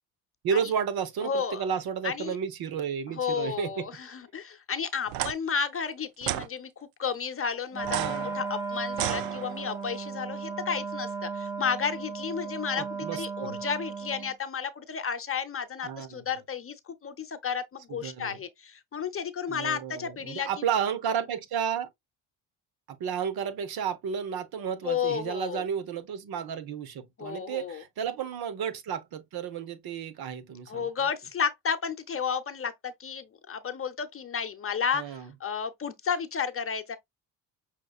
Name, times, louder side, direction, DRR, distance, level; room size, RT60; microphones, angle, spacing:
voice 1, 0.4-3.9 7.9-8.4 12.8-13.6 15.8-16.2 17.9-18.4 19.5-21.9 22.9-30.9 34.9-35.3, right 7 dB, 55° right, 0.9 m, -32 dB
voice 2, 1.2-1.7 2.0-2.3 3.1-6.7 7.0-20.6 24.8-25.7 27.2-27.8 30.7-37.0, left 6 dB, 30° left, 0.7 m, -32 dB
sound 1, 5.1-5.3 6.2-6.5 7.8-9.8, right 14 dB, 75° right, 0.5 m, -33 dB
Wind instrument woodwind instrument, 7.7-14.4, right 4 dB, 10° right, 1.0 m, -36 dB
6.1 x 2.9 x 2.3 m
hypercardioid pair, 55°, 45 cm